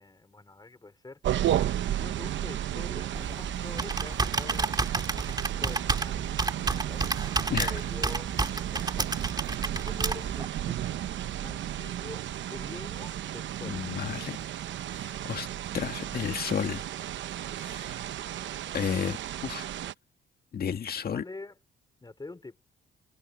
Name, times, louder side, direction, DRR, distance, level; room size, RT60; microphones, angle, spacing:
voice 1, 0.0-4.7 5.1-7.1 7.5-11.0 11.4-13.8 21.1-21.6 22.0-22.6, left 3 dB, 20° left, 4.9 m, -46 dB
sound 1, 1.2-19.9, right 11 dB, 70° right, 0.9 m, -33 dB
Computer keyboard, 3.1-10.5, right 3 dB, 20° right, 2.5 m, -31 dB
voice 2, 13.6-14.4 14.9-15.5 15.7-16.8 17.6-17.9 18.7-19.2 19.4-19.7 20.5-21.2, left 8 dB, 50° left, 2.0 m, -32 dB
cardioid pair, 90°, 20 cm